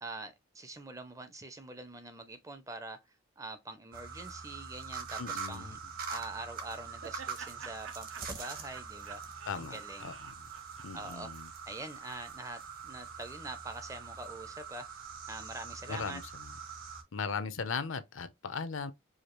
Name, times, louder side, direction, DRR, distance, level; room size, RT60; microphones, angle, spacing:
voice 1, 0.0-3.0 3.4-5.8 6.1-9.2 9.6-10.1 10.9-11.3 11.7-14.9 15.3-16.2, right 2 dB, 15° right, 0.5 m, -44 dB
sound 1, 3.9-17.0, right 5 dB, 45° right, 0.9 m, -44 dB
voice 2, 5.2-5.7 9.5-10.5 10.8-11.5 15.9-16.5 17.1-18.9, left 5 dB, 75° left, 0.6 m, -38 dB
Laughter, 6.4-11.6, right 6 dB, 75° right, 0.5 m, -50 dB
4.9 x 2.3 x 3.0 m
head